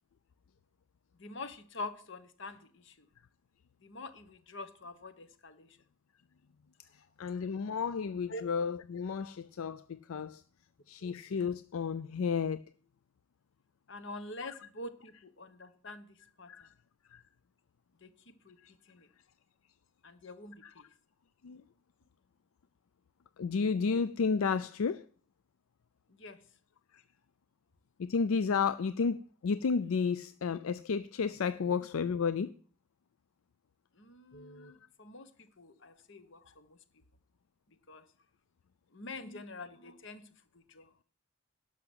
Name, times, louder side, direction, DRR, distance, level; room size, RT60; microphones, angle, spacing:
voice 1, 1.2-3.1 3.8-5.8 6.9-7.1 8.3-8.4 11.0-11.1 13.9-16.7 18.0-18.6 18.9-19.1 20.0-20.9 26.1-26.4 31.6-31.8 33.9-36.8 37.9-38.1 38.9-40.2 40.5-40.9, left 2 dB, 55° left, 1.2 m, -46 dB
voice 2, 7.2-10.4 10.9-12.6 14.4-14.5 16.5-16.7 17.1-17.2 18.6-18.7 20.6-20.7 21.4-21.6 23.4-25.1 26.9-27.0 28.0-32.5 34.6-34.7, left 5 dB, 75° left, 0.4 m, -32 dB
12.0 x 5.9 x 7.9 m
head